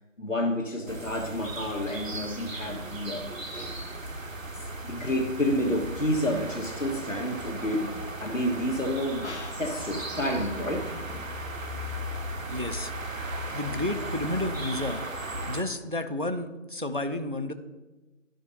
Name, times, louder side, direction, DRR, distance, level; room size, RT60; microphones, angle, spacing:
voice 1, 0.2-3.9 4.8-10.9, left 1 dB, 80° left, 3 dB, 1.6 m, -30 dB
sound 1, 0.9-15.6, right 1 dB, 90° right, 1.0 m, -36 dB
sound 2, 8.1-13.5, left 3 dB, 60° left, 0.7 m, -47 dB
voice 2, 12.5-12.9 13.5-15.0 15.5-17.5, left 1 dB, 45° right, 9 dB, 0.4 m, -31 dB
13.0 x 5.4 x 2.8 m, 1.2 s
figure-of-eight pair, 170°, 38 cm